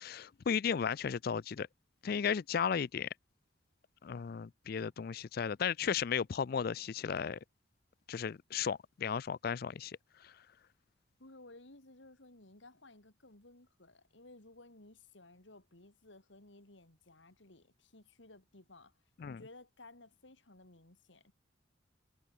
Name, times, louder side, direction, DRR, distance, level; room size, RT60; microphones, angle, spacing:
voice 1, 0.0-1.7 2.0-3.1 4.0-7.4 8.1-10.3 19.2-19.4, left 7 dB, 50° left, 0.4 m, -35 dB
voice 2, 11.2-21.3, left 2 dB, 70° left, 3.0 m, -57 dB
head